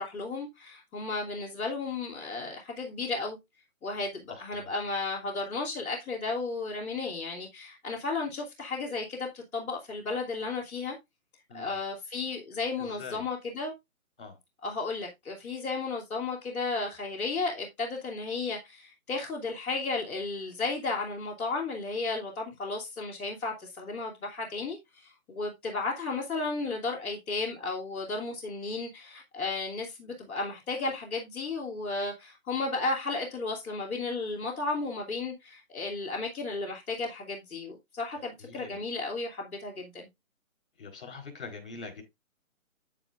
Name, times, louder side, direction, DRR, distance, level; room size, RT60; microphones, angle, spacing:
voice 1, 0.0-3.4 3.8-10.9 11.5-13.7 14.6-40.1, left 3 dB, 5° left, 1.5 m, -34 dB
voice 2, 4.3-4.7 11.5-11.8 12.8-13.2 14.2-14.3 38.4-38.8 40.8-42.0, left 4 dB, 40° left, 4.1 m, -44 dB
9.1 x 9.0 x 2.5 m
hypercardioid pair, 175°, 42 cm